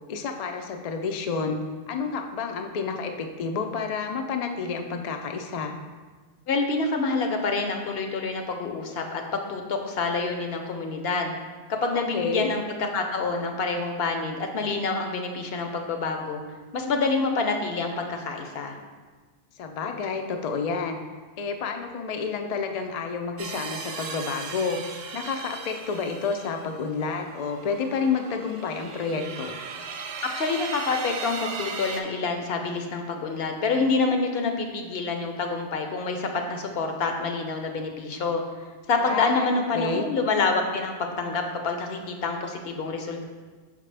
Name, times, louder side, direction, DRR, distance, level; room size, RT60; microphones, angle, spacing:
voice 1, 0.1-1.6 1.9-5.7 11.9-12.5 19.6-21.0 21.4-24.8 25.1-29.6 39.0-39.5 39.7-40.1, left 5 dB, 55° left, 4 dB, 0.4 m, -29 dB
voice 2, 6.5-11.3 11.7-12.6 12.9-16.4 16.7-18.8 30.2-38.4 38.9-43.2, left 4 dB, 70° left, 4 dB, 0.9 m, -27 dB
sound 1, 23.4-32.0, right 5 dB, 75° right, 0.8 m, -37 dB
5.6 x 5.1 x 3.3 m, 1.4 s
omnidirectional pair, 1.1 m